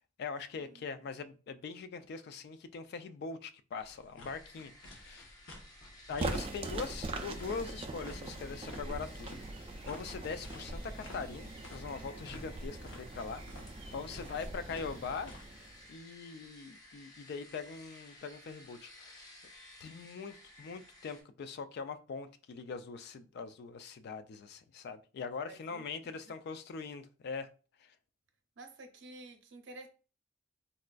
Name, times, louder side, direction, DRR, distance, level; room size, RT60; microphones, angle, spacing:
voice 1, 0.2-5.3 6.1-9.3 9.9-13.4 13.9-19.2 19.8-27.5 27.8-28.0, left 5 dB, 55° left, 0.3 m, -42 dB
sound 1, 3.8-15.4, left 1 dB, 85° left, 0.8 m, -52 dB
sound 2, 4.2-21.2, left 1 dB, 20° left, 0.6 m, -56 dB
sound 3, 6.2-16.0, right 2 dB, 30° right, 0.3 m, -42 dB
voice 2, 25.4-26.3 28.6-29.9, right 2 dB, 70° right, 0.6 m, -52 dB
4.0 x 2.4 x 2.2 m
head